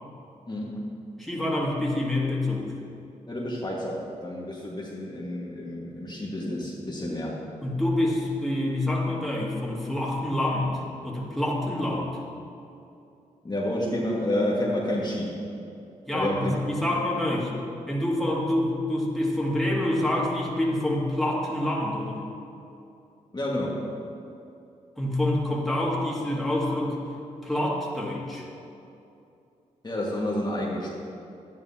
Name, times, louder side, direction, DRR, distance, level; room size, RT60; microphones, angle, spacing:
voice 1, 0.5-0.8 3.3-7.3 13.4-15.3 16.1-16.6 23.3-23.8 29.8-30.9, left 1 dB, 30° left, -4 dB, 1.7 m, -29 dB
voice 2, 1.2-2.7 7.6-12.2 16.1-17.5 17.9-22.2 25.0-27.0 27.4-28.5, left 1 dB, ahead, -4 dB, 2.2 m, -27 dB
11.0 x 9.9 x 2.8 m, 2.7 s
supercardioid pair, 45°, 14 cm